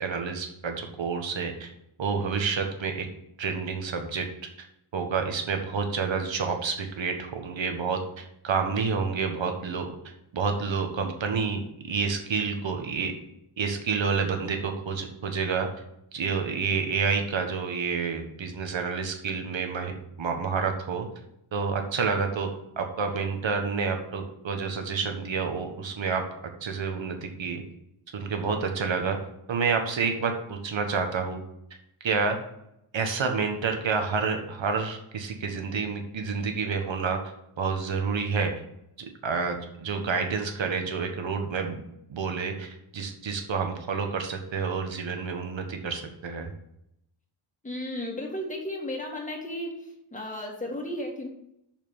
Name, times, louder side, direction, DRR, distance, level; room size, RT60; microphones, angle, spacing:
voice 1, 0.0-1.7 2.0-3.1 3.4-4.3 4.9-9.9 10.3-13.1 13.6-15.7 16.1-19.9 20.2-21.1 21.5-22.5 22.8-26.2 26.6-27.6 28.1-29.2 29.5-31.4 32.0-32.4 32.9-37.2 37.6-38.5 39.2-41.8 42.1-46.5, right 5 dB, 65° right, 5 dB, 1.5 m, -29 dB
voice 2, 47.6-49.8 50.1-51.3, left 1 dB, 15° left, -1 dB, 2.1 m, -34 dB
6.7 x 5.9 x 7.2 m, 0.79 s
wide cardioid pair, 160°, 49 cm